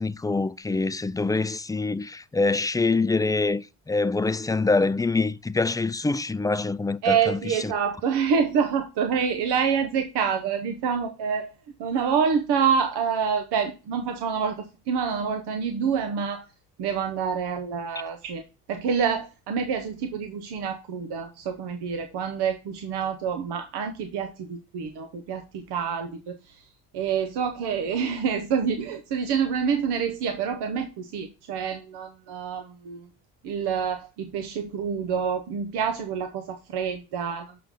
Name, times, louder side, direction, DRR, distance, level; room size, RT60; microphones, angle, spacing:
voice 1, 0.0-7.4, left 3 dB, 10° left, 0.3 m, -25 dB
voice 2, 7.0-11.5 11.8-16.5 16.8-18.4 18.7-26.6 26.9-33.1 33.4-37.6, right 6 dB, 85° right, 0.9 m, -27 dB
6.6 x 5.6 x 3.7 m
supercardioid pair, 65°, 39 cm